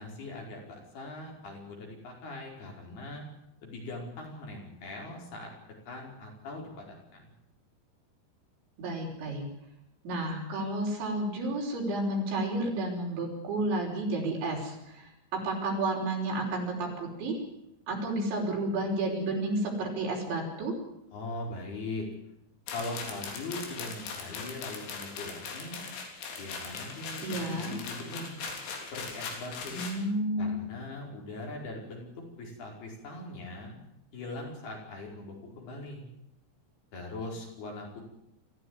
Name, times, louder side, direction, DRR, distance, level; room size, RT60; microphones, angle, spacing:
voice 1, 0.0-3.3 3.6-5.5 5.9-7.3 21.1-22.1 22.7-25.8 26.4-28.4 28.9-29.8 30.4-32.1 32.4-33.7 34.1-36.1 36.9-38.0, left 2 dB, 55° left, 0 dB, 7.0 m, -41 dB
voice 2, 8.8-9.4 10.0-17.4 17.9-20.7 27.2-27.8 29.7-30.5, right 2 dB, 75° right, 0 dB, 7.5 m, -31 dB
sound 1, 22.7-30.0, left 5 dB, 85° left, 6.0 m, -40 dB
25.5 x 15.5 x 9.8 m, 0.83 s
omnidirectional pair, 5.4 m